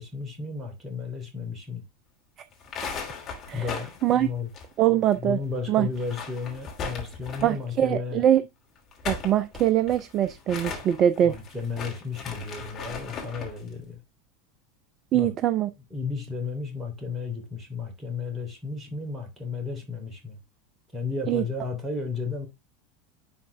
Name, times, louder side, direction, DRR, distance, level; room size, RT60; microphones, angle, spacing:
voice 1, 0.0-1.9 3.5-4.5 5.2-8.2 11.2-14.0 15.1-15.3 15.9-20.4 20.9-22.5, left 4 dB, 20° right, 3.2 m, -33 dB
sound 1, 2.5-5.1 5.4-5.5 5.9-7.6 8.7-13.6, left 5 dB, 35° left, 2.9 m, -37 dB
voice 2, 4.8-5.4 5.7-5.9 7.4-8.4 9.1-11.3 15.1-15.7 21.3-21.4, right 11 dB, 35° right, 0.5 m, -22 dB
10.5 x 4.4 x 3.4 m
figure-of-eight pair, 80°, 0 cm